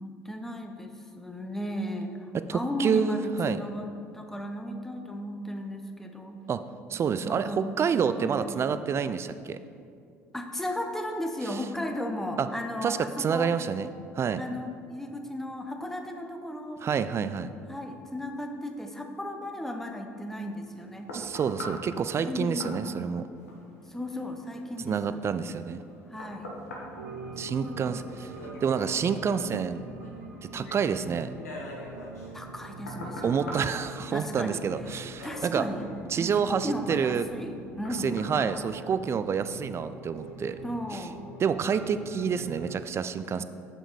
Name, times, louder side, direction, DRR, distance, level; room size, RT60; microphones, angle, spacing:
voice 1, 0.0-3.9 4.1-6.4 7.2-9.0 10.3-13.5 14.4-16.8 17.7-21.1 22.2-23.1 23.9-25.2 26.1-26.6 27.4-28.6 30.5-30.8 32.3-33.8 34.1-34.6 35.2-35.9 36.1-38.3 40.6-41.3, left 1 dB, 5° left, 4 dB, 0.7 m, -36 dB
voice 2, 2.3-3.6 6.5-6.6 6.9-9.6 11.5-11.6 12.4-12.5 12.8-13.9 14.2-14.4 16.8-17.5 21.1-23.2 24.8-25.8 27.4-28.3 28.6-29.8 30.4-31.3 33.2-35.7 36.1-37.2 37.9-40.6 40.9-41.1 41.4-43.4, right 6 dB, 35° right, 12 dB, 0.4 m, -28 dB
sound 1, 20.4-39.7 40.2-40.3, left 1 dB, 80° left, 1.0 m, -45 dB
sound 2, 27.0-42.8, right 3 dB, 80° right, 0.7 m, -45 dB
7.0 x 5.8 x 4.1 m, 2.4 s
figure-of-eight pair, 60°, 8 cm